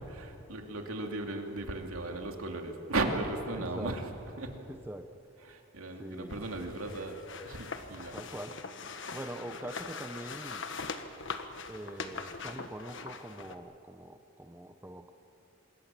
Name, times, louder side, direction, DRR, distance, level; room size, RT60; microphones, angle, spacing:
voice 1, 0.0-4.1 4.4-4.6 5.4-8.2, right 2 dB, 75° right, 3 dB, 2.9 m, -36 dB
voice 2, 3.5-4.0 4.6-5.2 6.0-6.4 8.1-8.6 9.1-10.7 11.7-15.1, right 1 dB, 10° right, 7 dB, 0.8 m, -43 dB
sound 1, 6.3-13.6, left 4 dB, 55° left, 1.4 m, -42 dB
26.0 x 21.5 x 7.7 m, 2.8 s
head